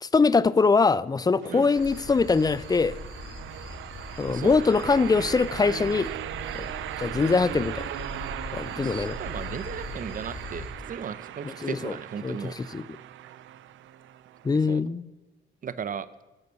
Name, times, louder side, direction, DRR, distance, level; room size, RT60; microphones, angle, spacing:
voice 1, 0.0-3.0 4.2-6.1 6.5-6.7 7.0-7.9 8.5-9.2 11.4-11.9 12.2-12.8 14.4-15.1, left 4 dB, 20° left, 19 dB, 0.4 m, -23 dB
sound 1, 1.4-14.8, right 12 dB, 75° right, 0.6 m, -38 dB
sound 2, 1.7-10.7, left 2 dB, 75° left, 4.9 m, -41 dB
voice 2, 4.2-4.6 8.7-12.6 14.5-14.8 15.6-16.1, right 7 dB, 45° right, 15 dB, 0.8 m, -36 dB
15.5 x 6.8 x 6.9 m, 1.1 s
cardioid pair, 90°, 20 cm